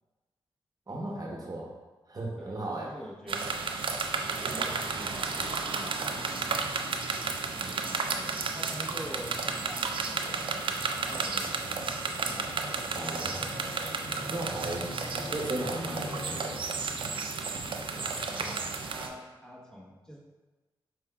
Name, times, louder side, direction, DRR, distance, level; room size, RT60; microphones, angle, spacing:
voice 1, 0.9-1.7 2.1-2.9 7.6-7.8 12.9-13.5 14.3-14.9 15.3-16.6, right 1 dB, 40° right, -2 dB, 1.0 m, -36 dB
voice 2, 2.8-3.6 4.4-6.9 7.8-13.0 14.1-14.8 17.9-20.2, equal, 5° left, -4 dB, 1.1 m, -46 dB
sound 1, 3.3-19.1, right 4 dB, 60° right, 0.5 m, -33 dB
sound 2, 4.6-17.3, left 3 dB, 45° left, 0.4 m, -47 dB
5.4 x 3.5 x 2.3 m, 1.2 s
cardioid pair, 45°, 10 cm